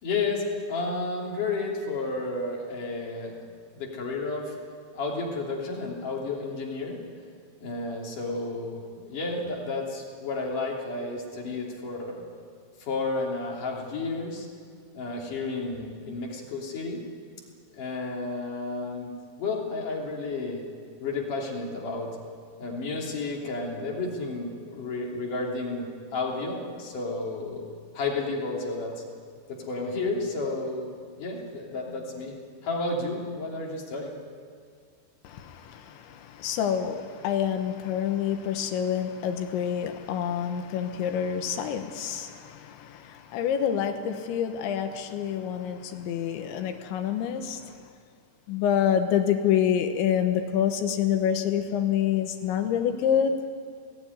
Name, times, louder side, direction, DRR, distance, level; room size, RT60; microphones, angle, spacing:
voice 1, 0.0-3.4 3.8-4.6 4.9-7.0 7.6-12.2 12.8-14.5 14.9-17.0 17.7-19.1 19.4-20.6 21.0-22.2 22.6-27.7 27.9-29.0 29.5-32.4 32.6-34.2, left 3 dB, 45° left, -1 dB, 4.2 m, -32 dB
voice 2, 35.2-47.7 48.5-53.3, left 9 dB, 75° left, 6 dB, 3.4 m, -27 dB
21.0 x 17.5 x 9.7 m, 2.1 s
omnidirectional pair, 5.5 m